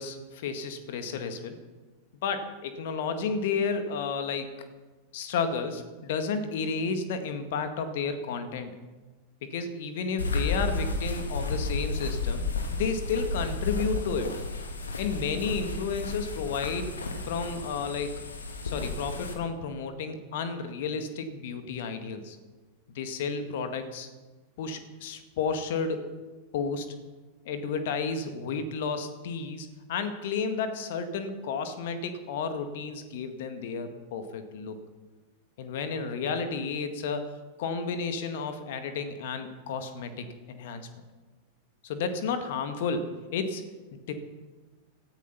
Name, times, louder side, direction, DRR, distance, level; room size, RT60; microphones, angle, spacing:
voice 1, 0.0-1.6 2.2-4.5 5.1-8.7 9.4-12.4 12.7-14.4 15.0-17.0 17.2-18.2 18.6-22.4 22.9-24.1 24.6-26.1 26.5-26.9 27.4-34.8 35.6-40.9 41.8-43.6 43.9-44.1, left 5 dB, 55° left, 8 dB, 1.8 m, -32 dB
sound 1, 10.2-19.3, left 3 dB, 70° left, 2.4 m, -32 dB
18.0 x 14.0 x 5.7 m, 1.2 s
figure-of-eight pair, 90°, 0 cm